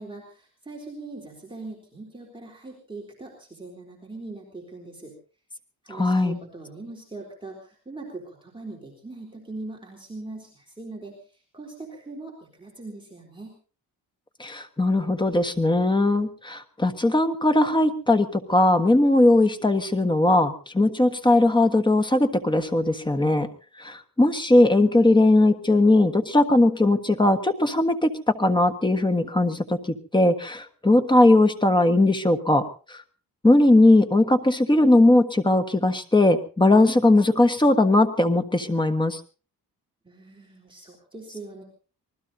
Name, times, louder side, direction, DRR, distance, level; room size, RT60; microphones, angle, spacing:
voice 1, 0.0-5.1 5.8-13.5 40.0-41.6, right 2 dB, 15° right, -1 dB, 3.8 m, -41 dB
voice 2, 5.9-6.4 14.4-23.5 23.8-32.6 32.9-33.0 33.4-39.2, left 2 dB, 15° left, 8 dB, 1.4 m, -19 dB
26.0 x 19.5 x 2.8 m, 0.37 s
wide cardioid pair, 135°, 36 cm